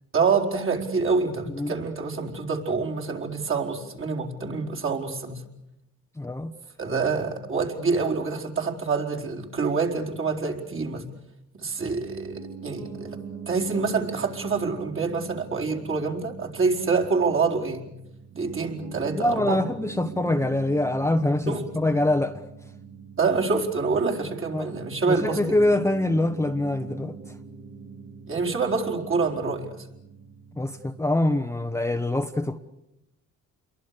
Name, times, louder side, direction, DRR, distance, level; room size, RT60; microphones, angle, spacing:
voice 1, 0.1-5.4 6.8-11.1 11.6-13.2 13.5-17.9 18.3-19.6 21.5-21.7 23.2-25.6 28.3-29.9, right 4 dB, 45° right, 4.5 m, -26 dB
voice 2, 6.2-6.5 19.2-22.4 24.5-24.7 25.1-27.1 30.6-32.6, left 1 dB, 10° left, 1.1 m, -24 dB
Piano, 12.0-31.4, right 5 dB, 85° right, 4.8 m, -43 dB
28.5 x 23.0 x 6.8 m
cardioid pair, 90°, 30 cm